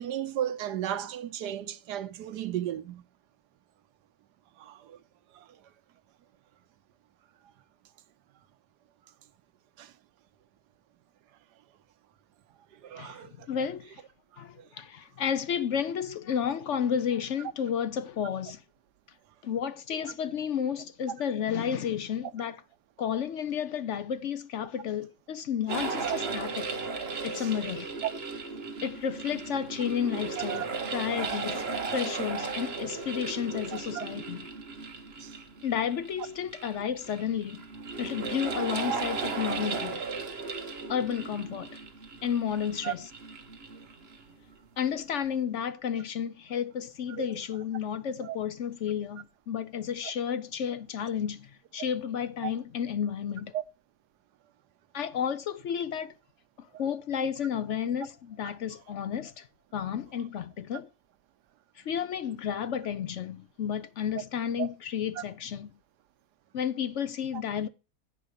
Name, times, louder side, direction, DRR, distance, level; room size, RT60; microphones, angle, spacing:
voice 1, 0.0-3.0 4.6-5.0 5.3-5.5 9.8-9.9 12.7-13.5 14.4-14.6 20.0-20.1 26.0-26.2 27.4-27.5 30.4-30.7 33.7-34.1 35.2-35.3 38.9-39.0 42.8-42.9 47.1-47.3 48.2-48.4 52.4-52.5 53.5-53.6 64.6-64.7 65.2-65.3 67.3-67.4, right 11 dB, 90° right, 1.4 m, -35 dB
voice 2, 13.0-14.0 14.4-18.6 19.4-22.6 23.0-26.7 27.2-27.9 28.8-30.7 30.9-31.7 31.9-34.4 35.6-37.6 38.0-40.0 40.9-41.8 42.2-43.0 44.8-53.5 54.9-56.1 56.6-59.5 59.7-60.9 61.8-65.7 66.5-67.7, left 8 dB, 60° left, 0.8 m, -32 dB
sound 1, 25.7-44.3, right 4 dB, 40° right, 1.3 m, -36 dB
10.0 x 4.9 x 6.4 m
omnidirectional pair, 1.7 m